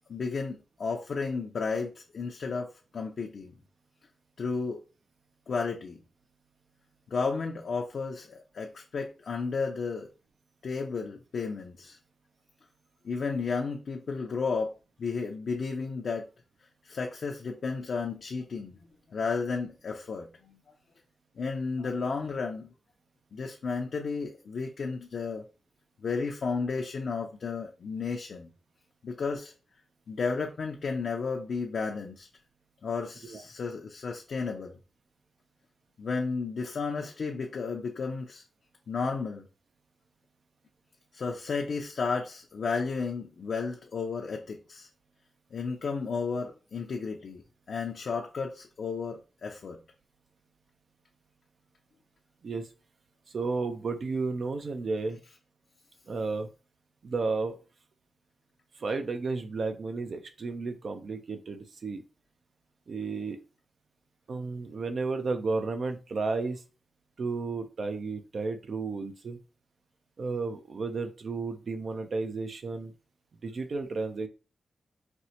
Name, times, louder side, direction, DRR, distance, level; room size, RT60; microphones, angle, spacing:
voice 1, 0.1-3.5 4.4-4.8 5.5-6.0 7.1-10.1 10.6-12.0 13.0-14.7 15.0-16.3 16.8-18.7 19.1-20.6 21.4-22.7 23.3-25.4 26.0-28.5 29.0-29.5 30.1-32.3 32.8-34.8 36.0-38.4 38.9-39.5 41.1-44.9 45.5-47.4 47.7-49.8, left 4 dB, 65° left, 0.5 m, -33 dB
voice 2, 53.3-55.2 56.1-56.5 57.0-57.5 58.8-62.0 62.9-63.4 64.3-66.6 67.2-69.4 70.2-72.9 73.4-74.3, right 3 dB, 60° right, 0.4 m, -32 dB
4.2 x 2.1 x 2.7 m
cardioid pair, 80°, 0 cm